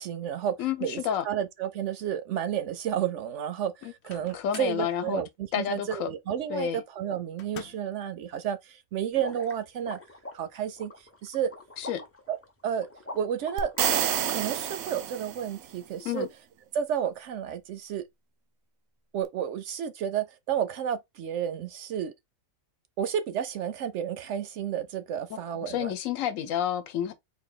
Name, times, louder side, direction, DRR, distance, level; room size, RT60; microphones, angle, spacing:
voice 1, 0.0-10.0 10.3-11.5 12.3-12.4 12.6-12.9 13.1-13.7 14.3-16.3 16.7-18.0 19.1-22.1 23.0-25.9, right 9 dB, 70° right, 0.8 m, -31 dB
voice 2, 0.6-1.2 4.3-5.2 5.5-6.1 6.5-6.8 11.8-12.0 16.0-16.3 25.3-27.1, left 9 dB, 75° left, 1.1 m, -30 dB
Microwave oven, 3.8-4.9 7.4-8.0, left 7 dB, 60° left, 0.9 m, -46 dB
sound 1, 9.1-14.2, left 1 dB, 15° left, 0.5 m, -43 dB
sound 2, 13.6-15.7, right 10 dB, 90° right, 1.1 m, -28 dB
4.1 x 2.8 x 3.7 m
omnidirectional pair, 1.4 m